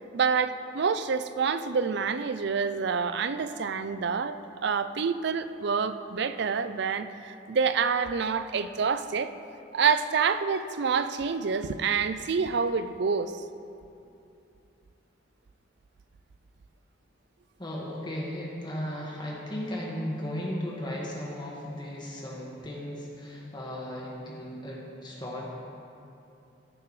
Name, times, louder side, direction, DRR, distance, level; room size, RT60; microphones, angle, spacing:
voice 1, 0.1-9.3 9.7-13.4, right 5 dB, 60° right, 12 dB, 0.4 m, -27 dB
voice 2, 17.6-25.5, left 1 dB, 25° left, -3 dB, 1.7 m, -36 dB
15.5 x 9.7 x 3.2 m, 2.7 s
head